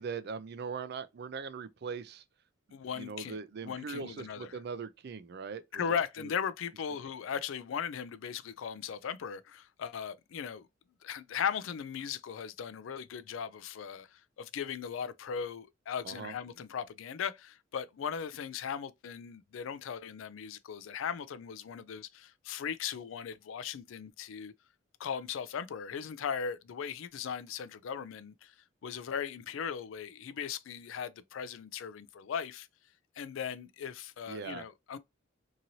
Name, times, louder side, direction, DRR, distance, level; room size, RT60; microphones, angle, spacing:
voice 1, 0.0-2.2 3.0-6.0 16.0-16.3 34.3-34.7, right 5 dB, 55° right, 0.4 m, -40 dB
voice 2, 2.7-4.6 5.7-10.7 11.0-24.5 25.0-28.5 28.8-32.7 33.2-35.0, left 7 dB, 75° left, 0.4 m, -38 dB
3.0 x 2.6 x 2.7 m
head